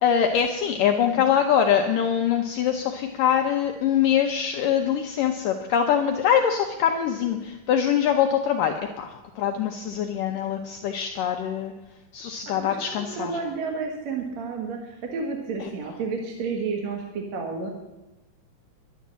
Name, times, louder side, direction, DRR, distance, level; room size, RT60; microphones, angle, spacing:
voice 1, 0.0-11.7 12.1-13.4 15.6-15.7, left 8 dB, 75° left, 4 dB, 2.1 m, -23 dB
voice 2, 12.6-17.7, right 4 dB, 55° right, 2 dB, 2.2 m, -31 dB
11.5 x 10.5 x 7.4 m, 1.0 s
omnidirectional pair, 4.5 m